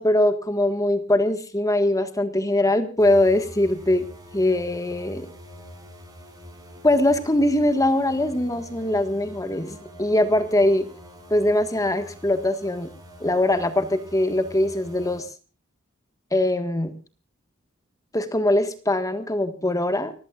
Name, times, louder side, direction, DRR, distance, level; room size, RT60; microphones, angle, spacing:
voice 1, 0.0-4.1 4.3-5.3 6.8-10.9 11.3-12.9 13.2-15.3 16.3-16.9 18.1-20.1, left 1 dB, 15° left, 9 dB, 1.5 m, -22 dB
sound 1, 3.0-15.2, equal, 20° right, 5.5 m, -45 dB
29.5 x 15.5 x 2.4 m, 0.32 s
head